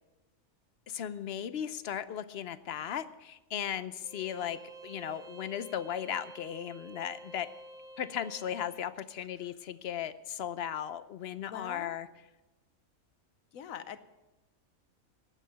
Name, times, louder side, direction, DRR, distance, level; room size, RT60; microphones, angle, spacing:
voice 1, 0.9-7.5 8.0-12.1, left 9 dB, 55° left, 14 dB, 0.8 m, -37 dB
Bowed string instrument, 4.0-8.9, right 2 dB, 85° right, 1.6 m, -50 dB
voice 2, 11.5-12.0 13.5-14.1, left 9 dB, 90° left, 12 dB, 1.2 m, -43 dB
12.0 x 8.5 x 9.0 m, 1.0 s
omnidirectional pair, 1.4 m